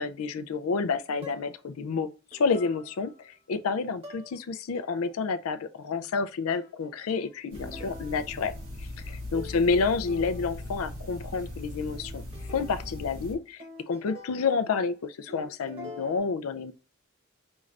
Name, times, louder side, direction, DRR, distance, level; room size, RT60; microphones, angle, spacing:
voice 1, 0.0-8.5 9.1-12.2 12.5-16.7, left 4 dB, 85° left, 0.4 m, -29 dB
sound 1, 1.2-1.7 2.3-3.3 4.0-4.4 4.8-5.3 6.5-9.1 9.3-10.7 11.9-15.0 15.3-16.2, left 1 dB, 30° right, 1.1 m, -47 dB
sound 2, 7.5-13.3, left 1 dB, 85° right, 1.9 m, -39 dB
5.2 x 2.4 x 3.2 m
head